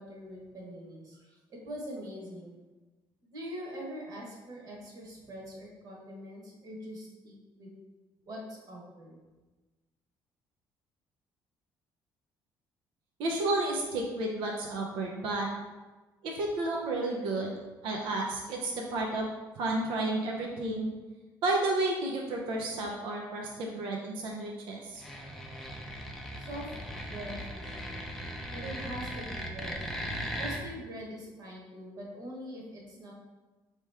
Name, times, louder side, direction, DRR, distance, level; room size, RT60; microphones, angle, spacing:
voice 1, 0.0-2.5 3.2-7.7 8.2-9.2 26.4-28.1 28.5-29.9 30.4-33.1, equal, 45° right, -2 dB, 1.2 m, -43 dB
voice 2, 13.2-15.5 16.2-17.5 17.8-19.3 19.6-20.9 21.4-25.0, right 2 dB, 90° right, -1 dB, 0.6 m, -31 dB
sound 1, 24.9-30.6, equal, 5° left, 0.5 m, -38 dB
4.7 x 2.9 x 3.4 m, 1.2 s
cardioid pair, 150°, 8 cm